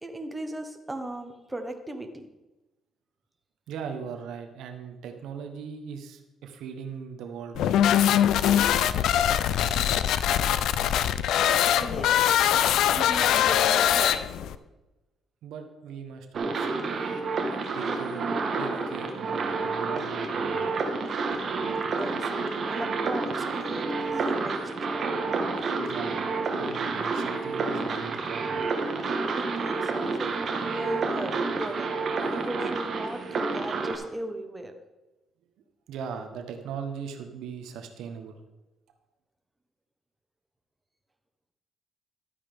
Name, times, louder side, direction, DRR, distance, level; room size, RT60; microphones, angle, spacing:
voice 1, 0.0-2.3 11.8-12.4 12.9-14.5 22.0-22.3 22.7-24.6 29.3-31.9 32.3-34.7, right 1 dB, 15° right, 6 dB, 1.2 m, -37 dB
voice 2, 3.7-7.8 15.4-17.0 17.7-18.3 18.6-20.7 25.6-26.3 26.6-28.6 35.9-38.4, right 6 dB, 85° right, 5 dB, 1.1 m, -39 dB
sound 1, 7.5-14.5, left 10 dB, 85° left, 0.4 m, -22 dB
sound 2, 16.3-34.0, right 4 dB, 55° right, 1.6 m, -29 dB
12.0 x 8.7 x 3.6 m, 1.0 s
cardioid pair, 90°, 0 cm